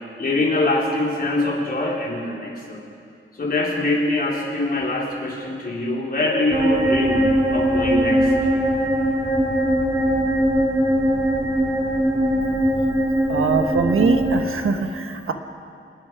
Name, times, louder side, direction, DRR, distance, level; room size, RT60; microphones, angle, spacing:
voice 1, 0.2-2.8 3.4-8.3, left 2 dB, 45° left, -3 dB, 4.1 m, -23 dB
sound 1, 6.5-14.4, right 1 dB, 15° right, 2.5 m, -20 dB
voice 2, 13.3-15.3, right 5 dB, 80° right, 6 dB, 1.4 m, -22 dB
26.5 x 20.0 x 4.9 m, 2.5 s
wide cardioid pair, 160°, 21 cm